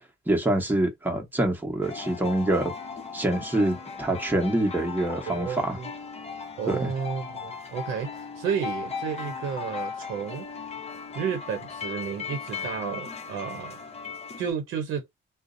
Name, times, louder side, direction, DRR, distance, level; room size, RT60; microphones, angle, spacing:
voice 1, 0.3-2.7 3.1-5.8 6.7-6.9, right 1 dB, 10° right, 1.0 m, -25 dB
sound 1, 1.8-14.5, left 5 dB, 30° left, 0.7 m, -37 dB
voice 2, 5.3-5.9 6.6-10.7 11.1-13.8 14.4-15.1, right 7 dB, 85° right, 0.6 m, -32 dB
2.6 x 2.0 x 2.5 m
cardioid pair, 90°, 20 cm